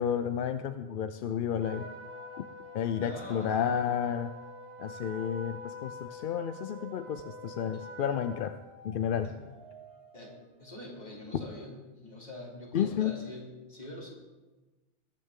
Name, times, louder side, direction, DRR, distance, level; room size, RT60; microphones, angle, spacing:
voice 1, 0.0-1.9 2.7-4.3 4.8-8.5 8.8-9.3 11.3-11.4 12.7-13.1, left 8 dB, 60° left, 10 dB, 0.6 m, -31 dB
sound 1, 1.4-11.2, right 2 dB, 60° right, 2.3 m, -55 dB
Trumpet, 1.6-8.5, left 1 dB, 20° right, 3.4 m, -46 dB
voice 2, 3.0-3.6 7.7-7.9 9.2-9.5 10.1-14.1, left 1 dB, 40° left, -3 dB, 3.2 m, -45 dB
20.5 x 9.8 x 3.7 m, 1.2 s
omnidirectional pair, 1.2 m